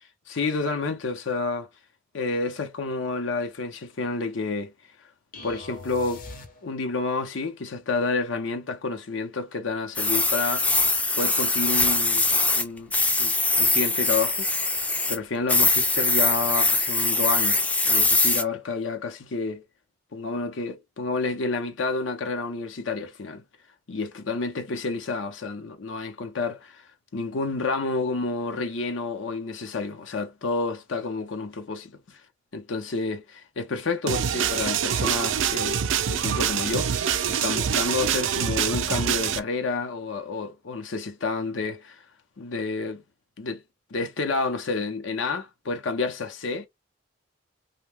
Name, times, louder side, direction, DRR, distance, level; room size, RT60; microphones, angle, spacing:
voice 1, 0.3-1.7 2.1-4.7 5.4-6.2 6.6-10.8 11.2-12.3 12.5-12.9 13.2-14.5 15.1-17.6 17.8-19.6 20.1-23.4 23.9-26.8 27.1-32.2 32.5-35.8 36.1-42.0 42.4-43.0 43.4-43.6 43.9-46.7, left 3 dB, 80° left, 0.7 m, -29 dB
sound 1, 5.3-7.1, left 3 dB, 45° left, 0.7 m, -42 dB
sound 2, 9.9-12.6 12.9-15.2 15.5-18.4, left 3 dB, 5° left, 0.3 m, -22 dB
sound 3, 34.1-39.4, right 8 dB, 80° right, 0.4 m, -25 dB
2.7 x 2.2 x 3.3 m
head